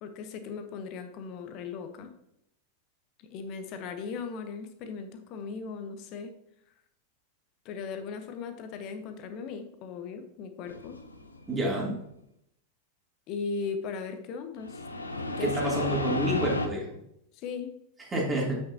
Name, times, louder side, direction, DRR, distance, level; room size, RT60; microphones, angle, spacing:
voice 1, 0.0-2.1 3.2-6.3 7.6-11.0 13.3-14.9 15.4-15.9 17.3-17.7, left 5 dB, 40° left, 8 dB, 1.0 m, -38 dB
sound 1, 10.7-11.8 14.6-16.7, left 2 dB, 80° left, 0.7 m, -32 dB
voice 2, 11.5-11.9 15.4-16.9 18.1-18.6, right 1 dB, 15° right, -3 dB, 2.9 m, -28 dB
8.5 x 6.3 x 2.8 m, 0.76 s
figure-of-eight pair, 90°, 0 cm